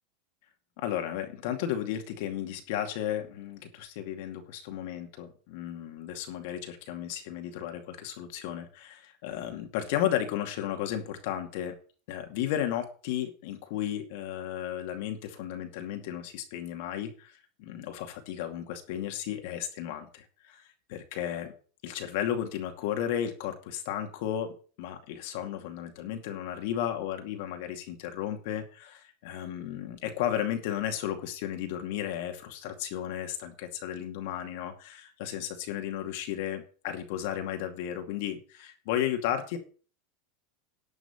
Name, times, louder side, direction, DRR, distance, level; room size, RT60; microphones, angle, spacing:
voice 1, 0.8-11.7 12.1-17.3 17.6-20.6 20.9-21.5 21.8-39.6, left 10 dB, 65° left, 5 dB, 2.3 m, -34 dB
11.5 x 6.1 x 7.3 m, 0.39 s
supercardioid pair, 150°, 0 cm